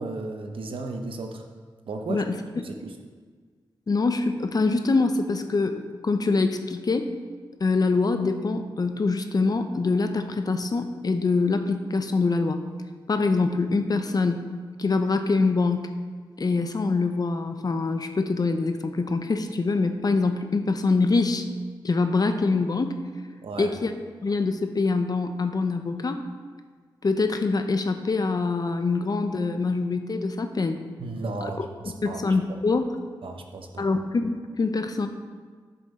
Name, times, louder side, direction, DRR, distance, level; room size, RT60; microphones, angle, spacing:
voice 1, 0.0-1.4 1.9-2.3 2.6-2.9 23.4-23.7 31.0-32.2 33.2-33.9, right 3 dB, 80° right, 4 dB, 0.9 m, -34 dB
voice 2, 3.9-7.1 7.6-12.6 13.1-14.5 14.8-15.9 16.4-21.5 21.8-23.0 23.6-23.9 24.2-26.2 27.0-30.8 31.4-31.5 32.0-33.0 33.8-35.1, left 3 dB, 45° left, 7 dB, 0.7 m, -24 dB
11.0 x 6.9 x 3.7 m, 1.6 s
cardioid pair, 65°, 9 cm